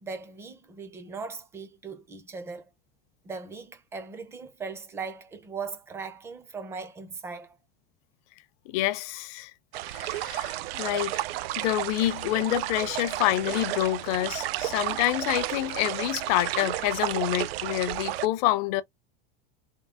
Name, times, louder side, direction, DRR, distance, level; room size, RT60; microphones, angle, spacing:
voice 1, 0.0-2.7 3.2-7.6, right 5 dB, 10° right, 0.4 m, -39 dB
voice 2, 8.7-9.5 9.9-11.2 11.6-18.8, left 15 dB, 45° left, 0.5 m, -27 dB
sound 1, 9.7-18.3, right 15 dB, 90° right, 0.5 m, -32 dB
3.7 x 2.6 x 3.5 m
supercardioid pair, 170°, 29 cm